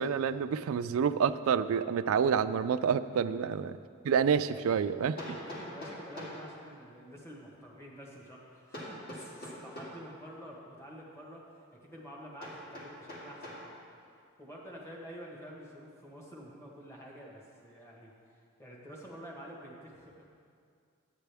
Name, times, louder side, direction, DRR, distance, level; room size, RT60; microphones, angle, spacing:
voice 1, 0.0-3.7 4.0-5.2, right 7 dB, 80° right, 13 dB, 0.3 m, -28 dB
Hammer, 5.2-6.5 8.7-10.0 12.4-13.7, equal, 45° left, 2.1 m, -43 dB
voice 2, 5.3-13.7 14.1-20.2, equal, 15° left, -4 dB, 1.3 m, -49 dB
12.0 x 9.0 x 3.4 m, 2.3 s
head